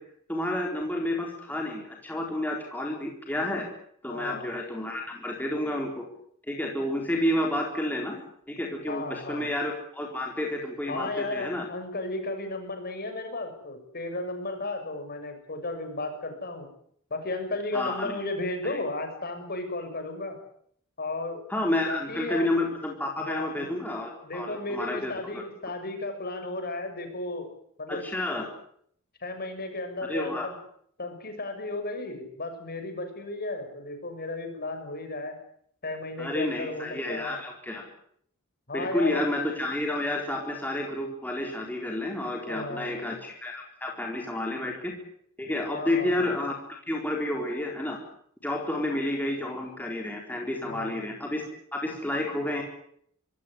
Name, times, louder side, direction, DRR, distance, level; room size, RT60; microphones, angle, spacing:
voice 1, 0.3-3.7 4.0-6.0 6.5-8.2 8.5-11.7 17.7-18.1 18.6-18.8 21.5-25.4 27.9-28.5 30.1-30.5 36.2-37.8 38.7-44.9 45.4-46.5 46.9-48.0 48.4-51.5 51.7-52.6, left 1 dB, 10° left, 0 dB, 4.0 m, -30 dB
voice 2, 4.1-4.5 8.9-9.5 10.9-16.7 17.1-20.4 21.0-21.4 21.9-22.5 23.2-23.7 24.2-27.5 27.8-28.0 29.2-30.5 31.0-35.3 35.8-37.4 38.7-39.3 42.4-43.1 45.7-46.2 50.6-51.0, left 2 dB, 45° left, 6 dB, 6.8 m, -34 dB
25.0 x 16.5 x 10.0 m, 0.67 s
head